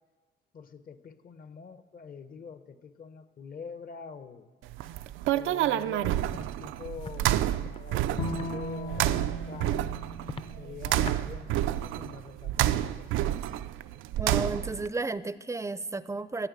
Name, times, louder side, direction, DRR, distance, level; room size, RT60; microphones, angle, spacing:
voice 1, 0.5-4.5 5.3-9.2 9.5-10.0 10.6-13.4, left 6 dB, 45° left, 11 dB, 0.9 m, -45 dB
sound 1, 4.7-14.9, right 13 dB, 90° right, 0.4 m, -29 dB
Walk footsteps, 6.3-6.5 7.0-7.2 7.6-7.8 8.3-8.5 8.9-9.2 9.6-9.8 10.2-10.5 11.0-11.2, left 4 dB, 30° left, 0.6 m, -40 dB
Bowed string instrument, 8.2-11.5, left 1 dB, 75° left, 1.1 m, -38 dB
voice 2, 14.2-16.5, right 3 dB, 15° right, 15 dB, 0.5 m, -33 dB
10.5 x 9.9 x 8.3 m, 1.4 s
cardioid pair, 90°, 20 cm